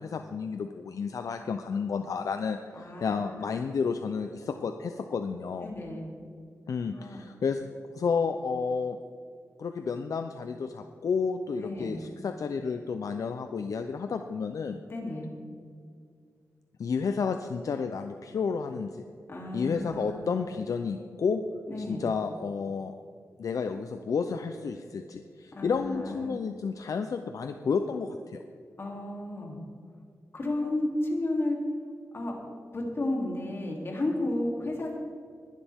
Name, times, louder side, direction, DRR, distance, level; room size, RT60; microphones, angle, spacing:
voice 1, 0.0-5.7 6.7-7.6 7.9-9.0 9.6-14.8 16.8-19.0 19.5-21.4 21.8-22.9 23.4-28.4, left 5 dB, 75° left, 7 dB, 0.6 m, -31 dB
voice 2, 2.8-3.1 5.6-6.1 6.9-7.2 11.6-12.0 14.9-15.3 19.3-20.3 21.7-22.0 25.5-26.3 28.8-29.6 30.3-31.6 32.1-32.3 32.7-35.0, left 1 dB, 45° left, -1 dB, 3.1 m, -32 dB
20.5 x 11.5 x 3.6 m, 2.2 s
wide cardioid pair, 130°, 6 cm